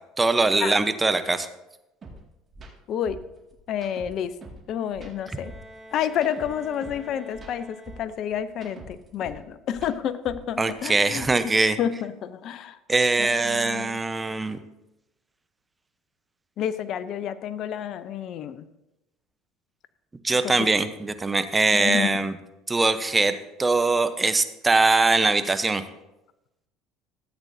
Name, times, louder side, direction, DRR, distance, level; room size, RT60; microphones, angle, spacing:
voice 1, 0.2-1.5 10.6-11.8 12.9-14.6 20.2-22.3 22.7-23.3 23.6-25.8, right 3 dB, 20° right, 10 dB, 0.8 m, -22 dB
sound 1, 2.0-2.2 2.5-2.7 3.1-4.6 4.9-7.0 7.3-9.4 9.7-11.6, right 3 dB, 35° right, 2.1 m, -44 dB
voice 2, 2.9-3.2 3.7-4.3 4.7-5.5 5.9-11.3 11.8-12.8 13.2-14.0 16.6-18.6 20.4-20.7 21.7-22.1, left 9 dB, 55° left, 14 dB, 0.6 m, -29 dB
Bowed string instrument, 5.1-8.6, equal, 15° left, 2.3 m, -47 dB
14.5 x 8.1 x 2.7 m, 0.94 s
hypercardioid pair, 80°, 0 cm